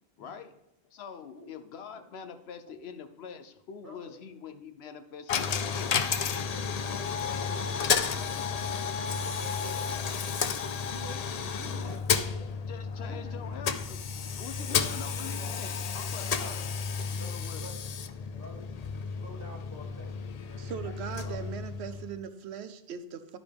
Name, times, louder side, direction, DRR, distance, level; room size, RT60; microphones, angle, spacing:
voice 1, 0.2-0.5 0.9-6.0 12.5-14.1 14.4-16.6 17.1-17.6, left 6 dB, 75° left, 10 dB, 0.9 m, -44 dB
voice 2, 3.8-4.2 6.4-9.0 9.3-10.0 10.8-12.3 13.0-13.3 14.5-15.4 16.4-16.7 17.2-17.8 18.4-18.7 19.0-20.9 21.2-21.5, equal, 20° left, -3 dB, 2.3 m, -49 dB
Coin (dropping), 5.3-22.2, left 6 dB, 55° left, 0.5 m, -32 dB
voice 3, 20.6-23.4, right 7 dB, 85° right, 10 dB, 0.9 m, -39 dB
12.0 x 5.0 x 3.5 m, 0.91 s
omnidirectional pair, 1.1 m